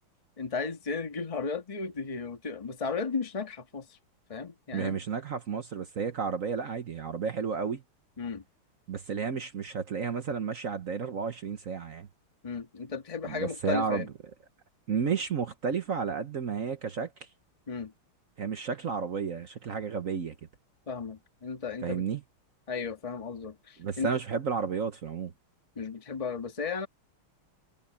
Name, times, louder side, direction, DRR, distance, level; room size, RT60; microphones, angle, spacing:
voice 1, 0.4-4.0 4.3-5.0 8.2-8.4 12.4-14.1 17.7-17.9 20.9-22.0 22.7-24.1 25.7-26.9, left 5 dB, 15° left, 1.5 m, -35 dB
voice 2, 4.7-7.8 8.9-12.1 13.3-14.1 14.9-17.1 18.4-20.3 21.8-22.2 23.8-25.3, right 6 dB, 50° right, 1.1 m, -32 dB
omnidirectional pair, 2.3 m